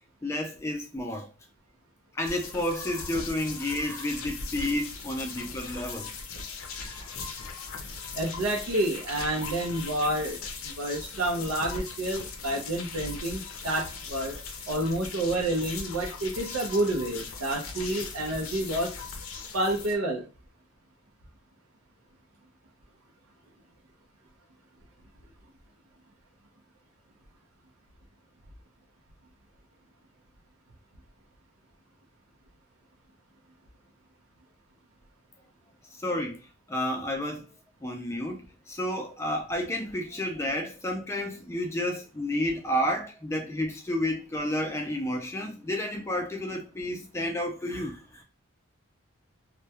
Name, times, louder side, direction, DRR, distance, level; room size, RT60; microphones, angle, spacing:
voice 1, 0.2-1.3 2.1-6.1 6.8-7.1 36.0-36.4 36.7-37.4 37.8-48.2, left 1 dB, 15° left, 0.3 m, -31 dB
sound 1, 2.2-19.9, left 4 dB, 75° left, 0.5 m, -39 dB
voice 2, 8.1-10.4 10.6-14.3 14.7-18.9 19.5-20.3, right 1 dB, 85° right, 0.5 m, -29 dB
2.2 x 2.1 x 2.7 m
head